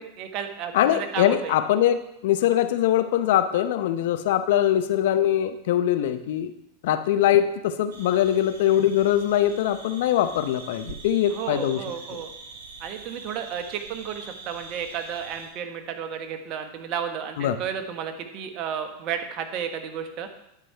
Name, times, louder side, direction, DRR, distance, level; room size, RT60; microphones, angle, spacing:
voice 1, 0.0-1.6 11.3-12.3 12.8-20.3, right 8 dB, 50° right, 7 dB, 1.2 m, -33 dB
voice 2, 0.7-2.0 2.2-6.5 6.8-11.8 17.4-17.6, left 11 dB, 65° left, 10 dB, 0.7 m, -22 dB
sound 1, 7.9-15.5, right 4 dB, 70° right, 1.7 m, -43 dB
10.5 x 4.8 x 5.6 m, 0.82 s
hypercardioid pair, 90°, 0 cm